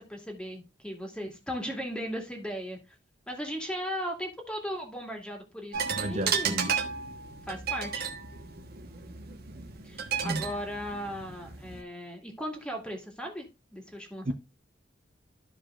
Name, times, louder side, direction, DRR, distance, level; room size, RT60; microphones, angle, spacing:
voice 1, 0.0-2.8 3.3-6.7 7.5-8.1 9.8-13.5 13.7-14.3, equal, 5° left, 2.0 m, -37 dB
sound 1, 5.7-11.8, right 7 dB, 60° right, 1.2 m, -34 dB
voice 2, 6.0-6.7 10.2-10.4 14.3-14.4, right 1 dB, 40° right, 0.7 m, -32 dB
13.0 x 5.0 x 2.4 m
head